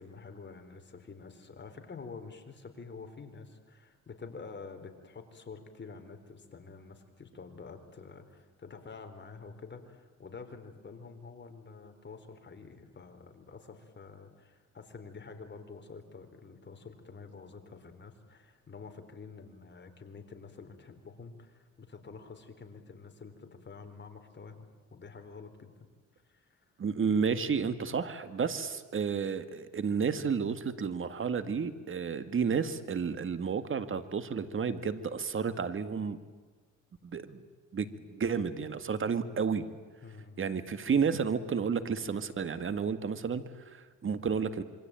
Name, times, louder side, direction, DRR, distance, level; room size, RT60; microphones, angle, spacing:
voice 1, 0.0-25.7 26.3-26.6 40.0-40.4, left 4 dB, 35° left, 6 dB, 4.1 m, -48 dB
voice 2, 26.8-36.2 37.0-37.4 37.7-39.7 40.4-44.6, right 6 dB, 45° right, 11 dB, 2.0 m, -31 dB
27.0 x 23.5 x 9.0 m, 1.4 s
cardioid pair, 90°, 30 cm